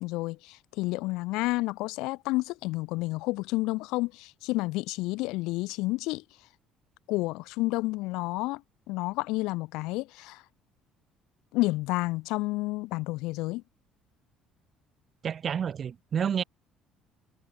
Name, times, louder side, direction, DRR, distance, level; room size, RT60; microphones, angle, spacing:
voice 1, 0.0-6.2 7.1-8.6 8.9-10.4 11.5-13.6, left 21 dB, 80° left, 2.4 m, -30 dB
voice 2, 15.2-16.4, right 8 dB, 45° right, 1.6 m, -29 dB
supercardioid pair, 75°, 0 cm